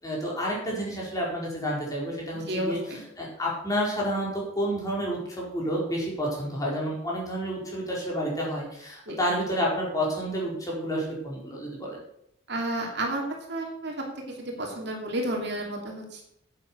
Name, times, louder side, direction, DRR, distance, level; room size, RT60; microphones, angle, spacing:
voice 1, 0.0-12.0, equal, 20° left, -4 dB, 4.5 m, -30 dB
voice 2, 2.5-3.0 9.1-9.2 12.5-13.2 13.5-13.9 14.4-16.2, right 1 dB, 55° right, 1 dB, 2.7 m, -31 dB
10.5 x 8.7 x 6.3 m, 0.74 s
head